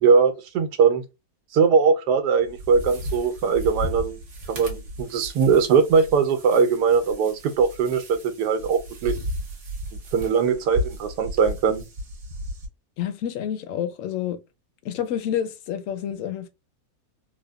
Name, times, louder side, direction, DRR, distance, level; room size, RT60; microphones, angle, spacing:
voice 1, 0.0-1.0 1.5-4.2 4.5-9.1 10.1-11.8, right 5 dB, 90° right, 1.2 m, -20 dB
sound 1, 2.4-12.7, equal, 55° right, 1.1 m, -35 dB
voice 2, 13.0-14.4 14.8-16.5, left 10 dB, 70° left, 0.8 m, -28 dB
3.4 x 2.0 x 2.2 m
omnidirectional pair, 1.7 m